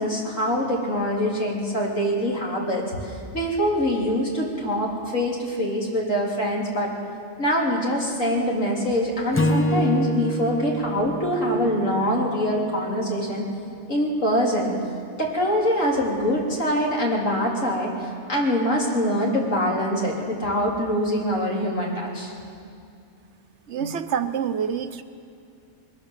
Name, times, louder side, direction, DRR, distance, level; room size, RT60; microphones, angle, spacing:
voice 1, 0.0-6.9 7.4-13.5 13.9-14.7 15.2-22.3, equal, 75° left, -3 dB, 4.0 m, -24 dB
Acoustic guitar / Strum, 9.3-12.7, right 1 dB, 15° left, 0.7 m, -26 dB
voice 2, 23.7-25.0, right 7 dB, 65° right, 10 dB, 1.0 m, -27 dB
21.5 x 17.5 x 7.3 m, 2.5 s
omnidirectional pair, 1.3 m